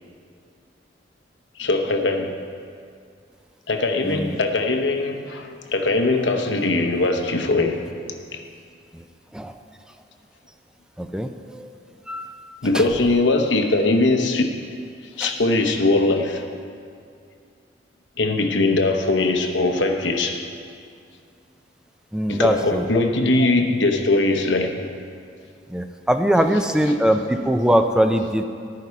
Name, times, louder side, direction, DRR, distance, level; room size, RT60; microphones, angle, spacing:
voice 1, 1.6-2.4 3.7-7.9 8.3-8.4 12.6-14.6 15.2-16.4 18.2-20.4 22.3-24.8, left 2 dB, 85° left, 5 dB, 1.0 m, -21 dB
voice 2, 4.0-4.4 8.9-9.0 9.3-9.6 11.0-11.7 12.1-12.4 12.7-12.9 15.2-15.3 22.1-22.9 25.7-28.4, equal, 5° right, 6 dB, 0.4 m, -21 dB
12.0 x 9.6 x 4.7 m, 2.3 s
head